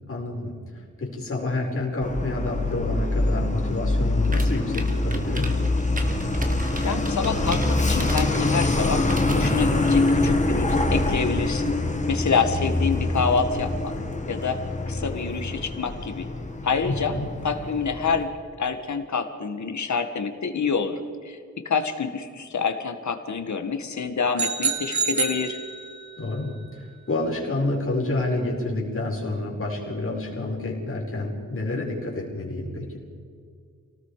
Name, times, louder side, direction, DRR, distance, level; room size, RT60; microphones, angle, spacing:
voice 1, 0.1-5.5 16.8-17.4 26.2-33.0, left 2 dB, 45° left, -2 dB, 5.1 m, -29 dB
Truck, 2.0-18.2, left 2 dB, 25° left, 1.9 m, -25 dB
sound 1, 4.2-10.3, right 2 dB, 25° right, 1.9 m, -37 dB
voice 2, 6.8-11.7 12.1-13.9 14.3-14.6 14.9-16.3 16.6-17.2 17.4-18.3 18.6-21.0 21.2-21.4 21.7-25.6, left 5 dB, 70° left, 7 dB, 1.9 m, -27 dB
sound 2, 24.4-26.2, right 5 dB, 65° right, 1.9 m, -27 dB
29.0 x 18.5 x 5.0 m, 2.2 s
wide cardioid pair, 160°, 30 cm